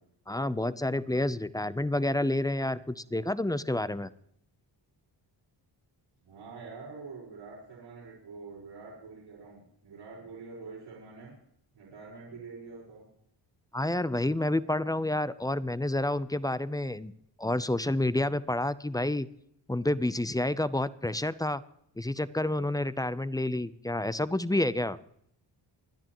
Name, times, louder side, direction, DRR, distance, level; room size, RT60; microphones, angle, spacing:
voice 1, 0.3-4.1 13.7-17.1 17.4-19.3 19.7-21.6 22.0-25.0, left 1 dB, 10° left, 15 dB, 0.6 m, -29 dB
voice 2, 6.2-11.3 11.7-13.0, right 4 dB, 90° right, -7 dB, 5.4 m, -46 dB
25.0 x 10.0 x 3.0 m, 0.71 s
cardioid pair, 85°, 45 cm